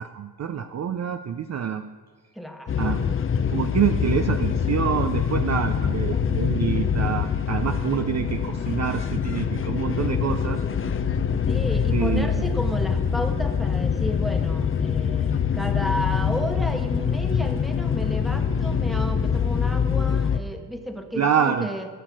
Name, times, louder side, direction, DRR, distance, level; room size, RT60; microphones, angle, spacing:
voice 1, 0.0-1.8 2.8-3.0 3.5-10.6 11.9-12.4 21.2-21.7, right 8 dB, 40° right, 8 dB, 0.5 m, -26 dB
voice 2, 2.3-3.2 11.5-21.9, equal, ahead, 5 dB, 1.2 m, -32 dB
sound 1, 2.7-20.4, left 7 dB, 30° left, 0.6 m, -24 dB
14.0 x 6.5 x 6.2 m, 1.5 s
cardioid pair, 95°, 41 cm